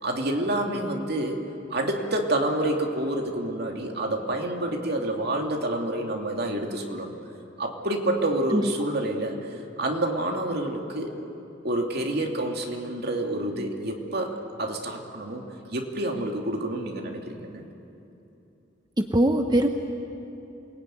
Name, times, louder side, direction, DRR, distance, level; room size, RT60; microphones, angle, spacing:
voice 1, 0.0-1.4 1.7-7.1 7.6-9.5 9.8-11.1 11.6-15.4 15.7-17.6, right 1 dB, 55° right, 2 dB, 2.7 m, -28 dB
voice 2, 19.0-19.7, right 1 dB, 20° right, 5 dB, 0.9 m, -21 dB
28.0 x 20.5 x 9.3 m, 2.8 s
head